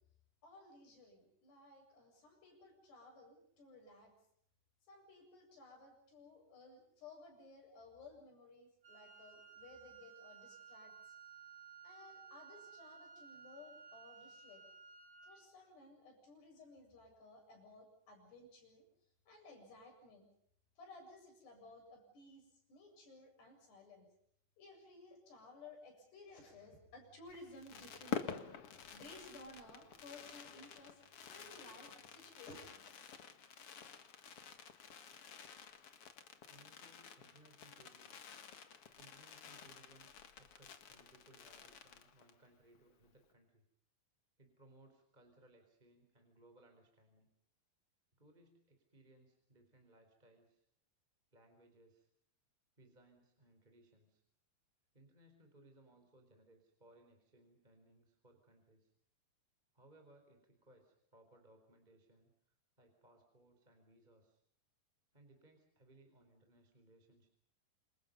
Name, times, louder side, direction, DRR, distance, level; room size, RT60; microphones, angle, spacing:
voice 1, 0.4-4.1 4.9-11.2 11.8-14.6 15.2-18.8 19.3-20.3 20.8-24.1 24.6-33.0, left 2 dB, 70° left, 3 dB, 9.7 m, -58 dB
Wind instrument woodwind instrument, 8.8-15.5, right 6 dB, 35° right, 6.5 m, -57 dB
Fireworks, 27.3-42.5 42.7-42.8 43.0-43.3, left 7 dB, 50° left, 1.8 m, -50 dB
voice 2, 36.5-38.2 38.9-40.1 40.4-43.6 44.4-47.3 48.2-50.7 51.3-52.1 52.8-54.2 54.9-58.9 59.7-62.3 62.8-64.4 65.1-67.3, right 1 dB, 10° right, 4 dB, 4.0 m, -66 dB
28.0 x 27.5 x 5.4 m, 0.68 s
omnidirectional pair, 4.9 m